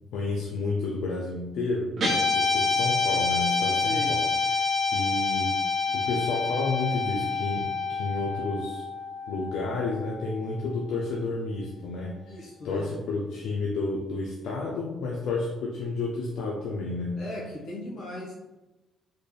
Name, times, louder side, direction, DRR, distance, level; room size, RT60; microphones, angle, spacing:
voice 1, 0.1-4.3 4.5-5.6 5.9-8.9 9.3-12.4 12.6-17.2, left 3 dB, 85° left, -2 dB, 0.5 m, -31 dB
Guitar, 2.0-10.4, left 4 dB, 50° right, 1.1 m, -27 dB
voice 2, 3.8-4.2 12.2-12.9 17.2-18.3, left 1 dB, 70° left, -4 dB, 1.4 m, -37 dB
4.1 x 2.4 x 3.3 m, 1.1 s
cardioid pair, 90°, 0 cm